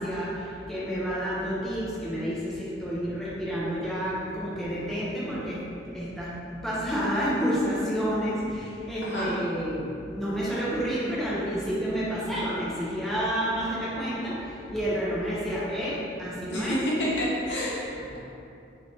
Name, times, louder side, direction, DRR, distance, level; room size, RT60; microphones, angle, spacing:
voice 1, 0.0-16.8 17.9-18.0, equal, ahead, -9 dB, 0.6 m, -30 dB
voice 2, 9.0-9.4 16.5-17.8, equal, 70° left, -7 dB, 0.9 m, -28 dB
3.1 x 2.7 x 3.2 m, 2.7 s
head